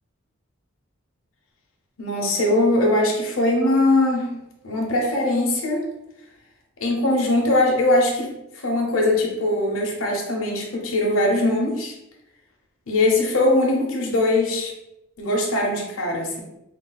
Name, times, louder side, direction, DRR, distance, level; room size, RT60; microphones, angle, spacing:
voice 1, 2.0-4.3 4.6-5.8 6.8-11.9 12.9-14.7 15.2-16.4, left 1 dB, 70° left, -1 dB, 0.8 m, -21 dB
3.3 x 2.3 x 3.9 m, 0.88 s
head